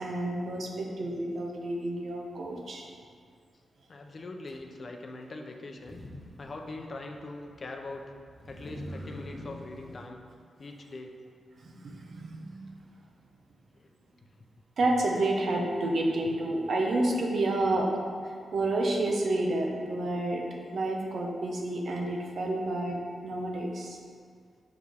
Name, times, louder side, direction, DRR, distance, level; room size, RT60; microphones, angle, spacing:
voice 1, 0.0-2.8 11.6-12.7 14.8-17.9 18.2-20.4 20.7-24.0, right 2 dB, 70° right, 0 dB, 0.9 m, -30 dB
voice 2, 3.9-6.0 6.4-8.1 8.5-10.2 10.6-11.1 13.8-13.9, left 2 dB, 50° left, 3 dB, 0.6 m, -42 dB
Motor vehicle (road), 4.5-4.6 5.7-10.1, equal, 25° left, 0.9 m, -45 dB
5.9 x 4.7 x 3.5 m, 2.1 s
cardioid pair, 65°, 0 cm